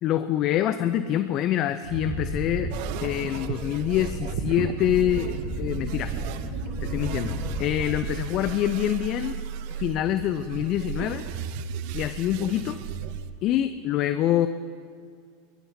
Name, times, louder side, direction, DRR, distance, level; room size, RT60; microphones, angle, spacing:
voice 1, 0.0-2.7 3.0-6.1 6.8-9.4 9.8-11.2 11.9-12.8 13.4-14.5, left 12 dB, 45° left, 11 dB, 0.6 m, -26 dB
Wind, 1.8-8.7 9.0-9.4, right 1 dB, 75° right, 4.3 m, -33 dB
sound 1, 2.7-13.3, right 9 dB, 55° right, 0.8 m, -35 dB
sound 2, 3.2-8.3, right 2 dB, 20° right, 3.5 m, -47 dB
23.0 x 20.5 x 2.8 m, 2.2 s
hypercardioid pair, 85°, 0 cm